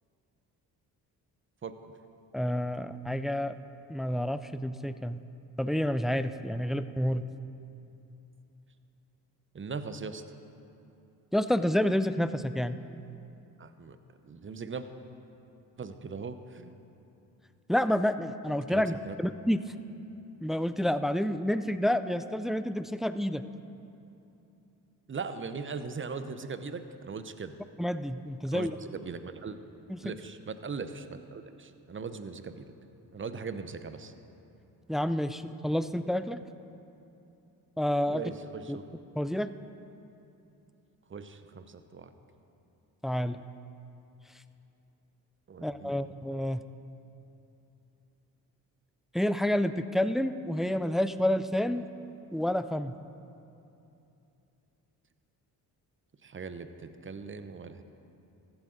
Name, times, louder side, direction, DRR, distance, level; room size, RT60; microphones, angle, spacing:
voice 1, 2.3-3.6 3.9-5.2 5.6-7.2 11.3-12.8 17.7-19.6 20.4-23.4 27.8-28.7 29.9-30.1 34.9-36.4 37.8-38.2 38.7-38.8 39.2-39.5 43.0-43.4 45.6-46.6 49.1-51.9 52.3-52.9, left 1 dB, ahead, 12 dB, 0.3 m, -29 dB
voice 2, 9.5-10.2 13.6-14.0 14.2-14.9 15.8-16.7 18.7-19.2 25.1-27.5 28.4-29.6 30.0-32.6 33.1-34.1 38.1-38.8 41.1-42.1 45.5-46.1 56.2-57.8, right 5 dB, 30° right, 10 dB, 0.9 m, -39 dB
15.0 x 11.5 x 3.9 m, 2.8 s
supercardioid pair, 60°, 41 cm